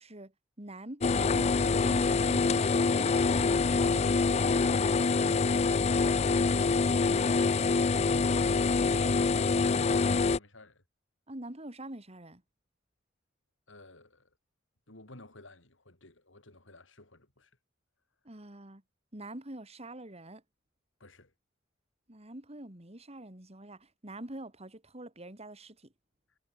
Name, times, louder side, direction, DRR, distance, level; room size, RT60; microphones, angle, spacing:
voice 1, 0.0-4.5 5.1-6.0 6.5-6.7 7.0-8.4 11.3-12.4 18.2-18.8 19.1-20.4 22.1-25.9, right 1 dB, 35° right, 3.4 m, -46 dB
sound 1, 1.0-10.4, left 4 dB, 35° left, 0.5 m, -25 dB
voice 2, 4.0-4.4 7.9-10.8 13.7-14.3 14.9-17.5 21.0-21.3, left 1 dB, 75° left, 5.8 m, -52 dB
head